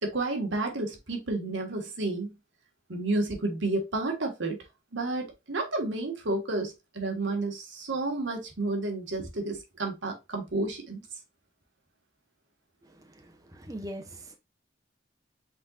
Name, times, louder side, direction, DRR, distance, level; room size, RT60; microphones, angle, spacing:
voice 1, 0.0-2.3 2.9-4.6 4.9-11.0, right 2 dB, 70° right, 1.5 m, -31 dB
voice 2, 13.5-14.4, equal, 15° right, 0.7 m, -40 dB
5.6 x 3.9 x 2.3 m
head